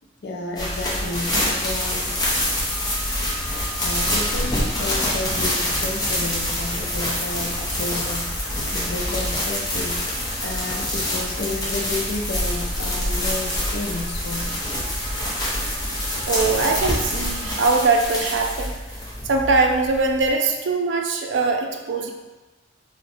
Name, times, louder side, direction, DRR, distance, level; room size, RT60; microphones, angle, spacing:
voice 1, 0.2-2.1 3.8-10.0 10.4-14.5, left 2 dB, 60° left, 1 dB, 0.5 m, -31 dB
sound 1, 0.6-20.3, left 1 dB, 20° left, 0.7 m, -26 dB
sound 2, 0.6-17.5, equal, 35° right, 1.3 m, -33 dB
voice 2, 15.2-15.8 16.3-18.8 19.2-22.1, right 3 dB, 75° right, 3 dB, 0.4 m, -22 dB
2.6 x 2.1 x 4.0 m, 1.1 s
head